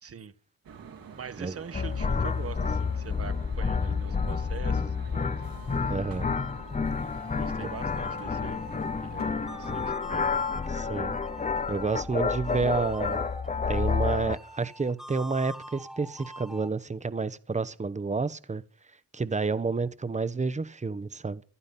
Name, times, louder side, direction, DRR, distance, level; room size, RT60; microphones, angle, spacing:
voice 1, 0.0-0.3 1.2-5.4 7.3-8.6 9.0-10.3, right 6 dB, 45° right, 1.2 m, -43 dB
sound 1, 0.6-9.8, right 6 dB, 80° right, 3.0 m, -48 dB
sound 2, 1.7-14.4, left 5 dB, 20° left, 0.8 m, -29 dB
sound 3, 5.0-16.7, equal, ahead, 1.3 m, -46 dB
voice 2, 5.9-6.3 7.6-7.7 10.7-11.2 11.7-13.3 13.7-18.6 19.1-21.4, right 4 dB, 20° right, 1.0 m, -30 dB
15.5 x 12.0 x 5.9 m
cardioid pair, 85°, 34 cm